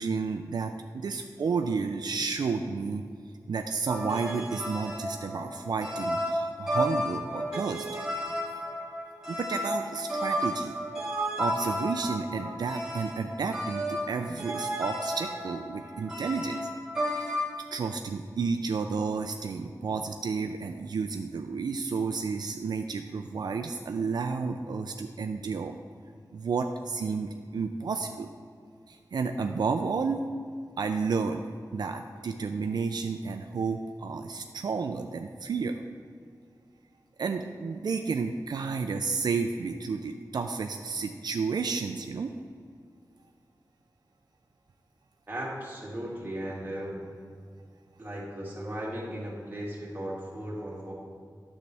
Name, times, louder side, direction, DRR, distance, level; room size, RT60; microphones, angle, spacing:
voice 1, 0.0-3.0 3.5-7.9 9.3-10.7 11.4-16.7 17.1-17.3 17.7-25.8 26.3-28.3 28.9-30.2 30.8-31.4 31.7-35.8 37.2-42.3, right 5 dB, 80° right, 6 dB, 0.4 m, -31 dB
sound 1, 3.9-17.5, equal, 10° right, 1.8 m, -33 dB
voice 2, 45.3-47.0 48.0-50.9, right 1 dB, 25° right, -5 dB, 2.2 m, -36 dB
9.4 x 7.3 x 3.4 m, 2.1 s
wide cardioid pair, 85°, 7 cm